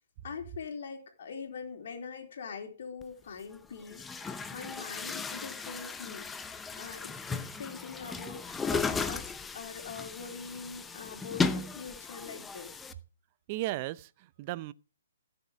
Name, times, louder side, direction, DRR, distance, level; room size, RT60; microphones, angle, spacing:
voice 1, 0.2-12.8, left 5 dB, 60° left, 4.0 m, -43 dB
Chatter / Gurgling / Tap, 3.0-3.1 3.8-12.9, left 4 dB, 10° left, 0.7 m, -36 dB
voice 2, 13.5-14.7, right 17 dB, 35° right, 0.6 m, -35 dB
15.0 x 7.4 x 5.3 m
hypercardioid pair, 140°, 0 cm